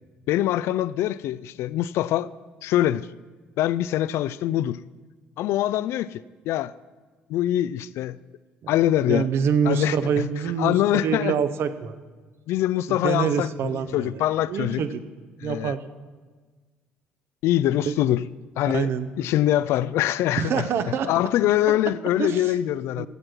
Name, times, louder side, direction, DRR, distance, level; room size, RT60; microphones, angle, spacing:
voice 1, 0.3-2.3 2.6-3.1 3.6-4.8 5.4-6.7 7.3-8.2 8.7-9.3 9.7-10.2 10.6-11.3 12.5-13.5 13.9-14.8 15.4-15.7 17.4-18.3 18.6-18.9 19.2-20.6 21.1-23.1, left 13 dB, 60° left, 0.3 m, -23 dB
voice 2, 9.0-11.9 12.9-15.0 15.4-15.8 17.9-18.0 18.7-19.1 20.4-21.1 22.2-22.5 23.0-23.1, right 6 dB, 55° right, 0.8 m, -26 dB
15.0 x 7.6 x 6.0 m
figure-of-eight pair, 50°, 5 cm